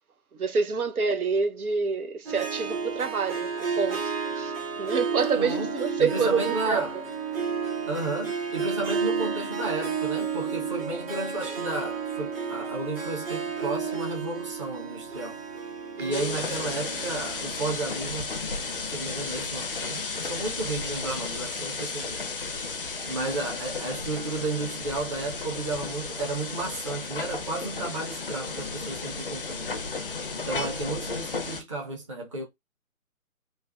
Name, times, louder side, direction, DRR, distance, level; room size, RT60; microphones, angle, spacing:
voice 1, 0.3-7.0 16.0-16.4, right 5 dB, 85° right, 0.7 m, -28 dB
Harp, 2.2-18.7, right 5 dB, 40° right, 1.1 m, -32 dB
voice 2, 5.3-6.9 7.9-15.4 16.0-18.3 18.9-22.2 23.0-29.7 30.5-32.4, right 2 dB, 25° right, 0.6 m, -33 dB
sound 1, 16.1-31.6, left 4 dB, 40° left, 0.4 m, -34 dB
3.3 x 2.2 x 2.2 m
figure-of-eight pair, 150°, 43 cm